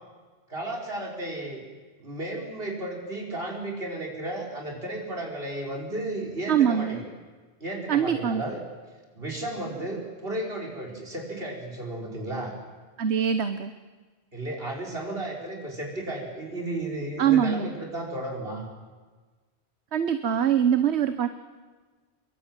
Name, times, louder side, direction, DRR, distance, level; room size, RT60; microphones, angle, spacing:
voice 1, 0.5-1.6 2.0-7.1 7.6-8.6 9.2-12.5 14.3-18.7, right 1 dB, 60° right, 0 dB, 5.6 m, -33 dB
voice 2, 6.5-7.0 7.9-8.4 13.0-13.7 17.2-17.7 19.9-21.3, right 8 dB, 80° right, 10 dB, 1.3 m, -23 dB
27.0 x 22.5 x 9.1 m, 1.4 s
omnidirectional pair, 1.1 m